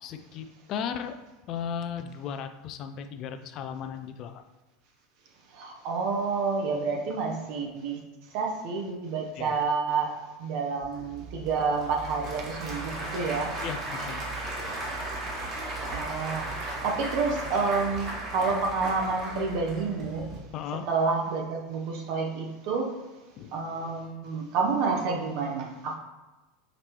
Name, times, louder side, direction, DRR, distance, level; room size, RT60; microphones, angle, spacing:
voice 1, 0.0-1.2 1.5-4.4 9.4-9.6 13.6-14.3 20.5-20.9 23.4-23.6, left 7 dB, 45° left, 8 dB, 0.4 m, -36 dB
voice 2, 5.5-8.0 8.3-13.5 15.9-20.3 20.9-22.9 23.5-25.9, right 4 dB, 55° right, 1 dB, 0.7 m, -29 dB
Applause / Crowd, 10.8-20.4, right 2 dB, 40° right, 1.3 m, -36 dB
5.1 x 2.8 x 3.0 m, 1.1 s
figure-of-eight pair, 80°, 0 cm